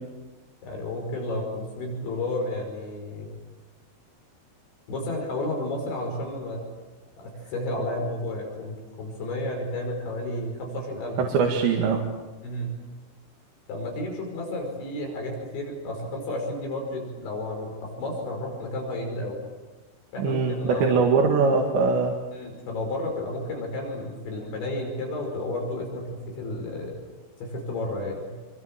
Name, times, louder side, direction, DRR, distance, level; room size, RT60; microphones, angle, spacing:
voice 1, 0.6-3.3 4.9-6.6 7.2-11.2 12.4-12.7 13.7-19.4 20.1-21.1 22.3-26.9 27.4-28.3, left 1 dB, 65° left, 1 dB, 7.6 m, -32 dB
voice 2, 11.2-12.0 20.2-22.2, right 4 dB, 70° right, 1 dB, 4.2 m, -22 dB
28.0 x 25.0 x 7.5 m, 1.2 s
omnidirectional pair, 5.6 m